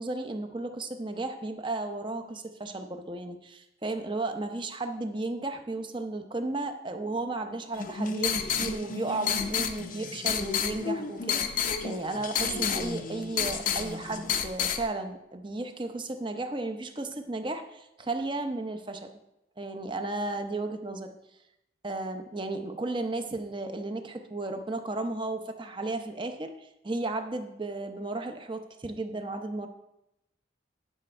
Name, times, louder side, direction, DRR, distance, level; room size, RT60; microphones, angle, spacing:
voice 1, 0.0-19.1 19.6-21.2 21.8-29.7, right 2 dB, 25° right, 6 dB, 0.7 m, -34 dB
sound 1, 7.7-14.8, left 6 dB, 45° left, 0.6 m, -30 dB
10.0 x 6.2 x 4.4 m, 0.86 s
head